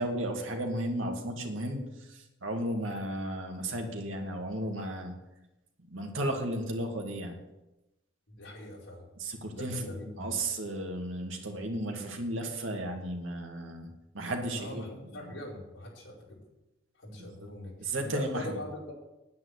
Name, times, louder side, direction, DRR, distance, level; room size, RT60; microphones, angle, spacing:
voice 1, 0.0-5.1 5.9-7.4 9.2-13.9 14.1-15.3 17.4-17.5 17.8-18.5, right 1 dB, 80° right, 2 dB, 2.3 m, -34 dB
voice 2, 8.3-9.0 9.4-10.5 14.4-16.4 16.9-18.9, left 1 dB, 75° left, -4 dB, 5.0 m, -41 dB
9.5 x 9.2 x 8.1 m, 0.98 s
head